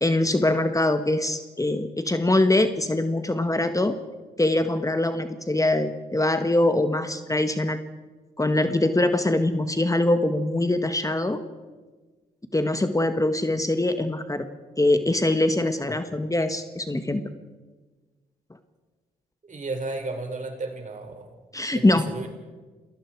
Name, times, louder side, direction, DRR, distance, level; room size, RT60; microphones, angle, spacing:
voice 1, 0.0-4.0 4.4-7.8 8.4-11.4 12.5-14.5 14.8-17.2 21.5-22.3, left 1 dB, 20° left, 8 dB, 1.6 m, -23 dB
voice 2, 19.4-21.3 21.7-22.3, right 3 dB, 45° right, 4 dB, 5.4 m, -33 dB
29.5 x 19.5 x 4.8 m, 1.3 s
supercardioid pair, 45°, 18 cm